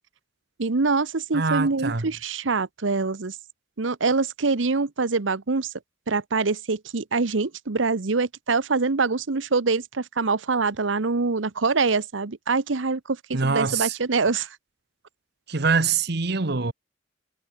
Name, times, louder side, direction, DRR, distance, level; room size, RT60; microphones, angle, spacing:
voice 1, 0.6-3.4 3.8-5.7 6.1-14.5, right 4 dB, 90° right, 1.0 m, -24 dB
voice 2, 1.3-2.1 13.3-14.0 15.5-16.7, right 4 dB, 60° right, 1.3 m, -24 dB
head